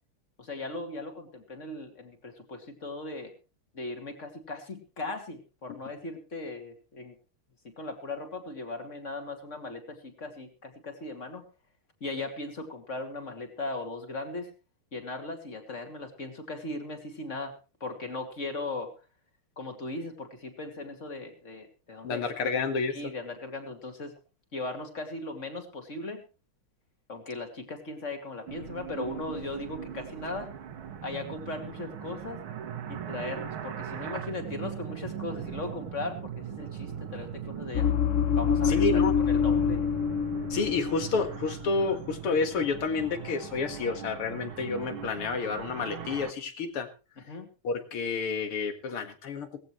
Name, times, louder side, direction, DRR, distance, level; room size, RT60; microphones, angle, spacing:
voice 1, 0.4-3.3 3.7-7.2 7.6-11.4 12.0-14.5 14.9-17.5 17.8-18.9 19.6-22.3 22.9-24.1 24.5-26.2 27.1-30.5 31.0-32.4 32.9-37.9 38.4-39.8 47.3-47.5, left 2 dB, 35° left, 6 dB, 2.7 m, -38 dB
voice 2, 22.0-22.9 38.6-39.1 40.5-46.9 47.6-49.5, left 4 dB, 80° left, 8 dB, 2.7 m, -29 dB
sound 1, 28.5-46.3, right 9 dB, 70° right, 2.1 m, -40 dB
sound 2, 37.7-41.2 41.5-41.8, left 7 dB, 55° left, 0.8 m, -26 dB
18.5 x 14.5 x 3.2 m, 0.32 s
omnidirectional pair, 2.4 m